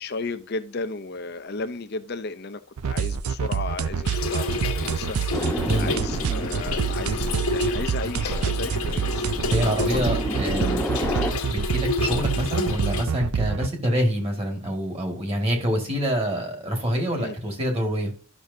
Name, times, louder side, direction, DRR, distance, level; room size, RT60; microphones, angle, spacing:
voice 1, 0.0-9.3 9.6-10.8 11.1-11.2 17.2-17.4, left 3 dB, 45° left, 0.6 m, -34 dB
sound 1, 2.8-13.7, right 6 dB, 90° right, 0.5 m, -27 dB
Trickle dribble / Fill (with liquid), 4.0-13.0, left 3 dB, 85° left, 1.4 m, -30 dB
sound 2, 5.3-11.3, equal, 5° left, 1.0 m, -32 dB
voice 2, 9.5-10.8 11.5-18.1, equal, 25° right, 2.0 m, -26 dB
12.0 x 6.2 x 2.7 m
head